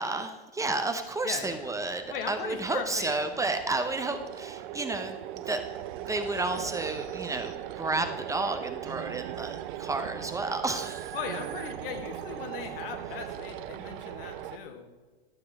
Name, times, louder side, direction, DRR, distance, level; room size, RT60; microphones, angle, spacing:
voice 1, 0.0-11.1, right 2 dB, 10° right, 7 dB, 0.7 m, -32 dB
sound 1, 1.0-14.6, right 12 dB, 55° right, 0.7 m, -39 dB
voice 2, 1.2-1.7 2.1-3.2 11.1-14.9, left 6 dB, 65° left, 5 dB, 1.9 m, -38 dB
12.0 x 6.7 x 5.3 m, 1.3 s
hypercardioid pair, 105°, 31 cm